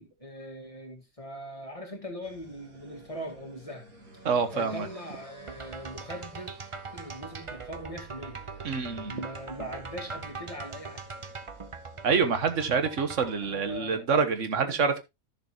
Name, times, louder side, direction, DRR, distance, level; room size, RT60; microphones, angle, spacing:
voice 1, 0.0-3.8 4.5-6.5 6.9-8.4 9.1-11.0 13.4-14.3 14.5-14.8, equal, 20° left, 2.4 m, -41 dB
sound 1, 2.2-13.8, right 3 dB, 75° right, 3.2 m, -51 dB
voice 2, 4.2-4.9 8.6-9.1 12.0-15.0, right 5 dB, 60° right, 1.5 m, -26 dB
sound 2, 5.5-13.4, right 4 dB, 35° right, 0.5 m, -41 dB
13.0 x 6.8 x 2.9 m
omnidirectional pair, 1.5 m